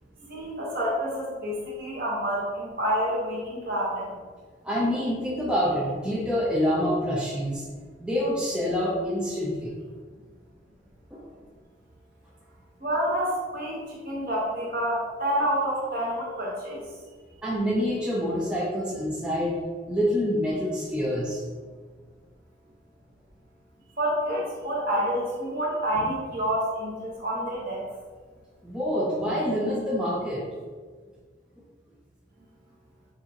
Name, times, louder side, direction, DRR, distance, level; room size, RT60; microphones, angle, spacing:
voice 1, 0.3-4.1 12.8-16.8 24.0-27.9, equal, 50° right, -5 dB, 1.3 m, -28 dB
voice 2, 4.6-7.6 8.0-9.7 11.1-11.2 17.4-19.6 19.9-21.4 28.6-30.4, equal, 5° right, -5 dB, 0.5 m, -26 dB
6.3 x 2.5 x 2.9 m, 1.5 s
head